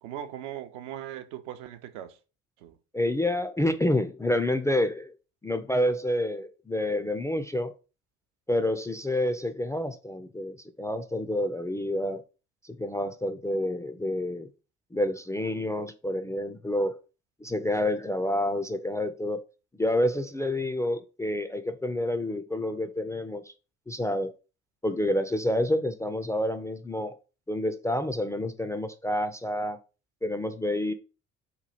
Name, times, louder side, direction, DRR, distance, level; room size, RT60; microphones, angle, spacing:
voice 1, 0.0-2.2 2.6-2.8, right 11 dB, 75° right, 0.6 m, -39 dB
voice 2, 2.9-5.1 5.4-7.7 8.5-12.2 12.6-14.5 14.9-17.0 17.4-19.4 19.8-23.4 23.9-24.3 24.8-27.2 27.5-29.8 30.2-30.9, left 1 dB, 10° left, 0.3 m, -28 dB
3.0 x 2.3 x 4.1 m
hypercardioid pair, 50°, 37 cm